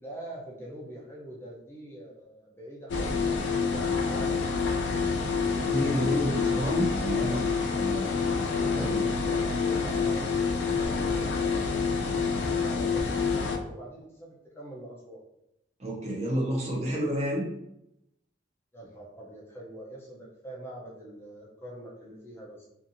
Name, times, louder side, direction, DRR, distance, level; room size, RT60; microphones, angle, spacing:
voice 1, 0.0-5.1 8.5-11.8 12.3-15.2 18.7-22.7, right 1 dB, 15° left, -5 dB, 0.5 m, -44 dB
sound 1, 2.9-13.6, left 5 dB, 70° left, 0.4 m, -27 dB
voice 2, 5.6-7.5 7.8-8.2 8.7-9.0 15.8-17.5, equal, 35° right, -2 dB, 0.6 m, -30 dB
2.7 x 2.4 x 2.5 m, 0.84 s
head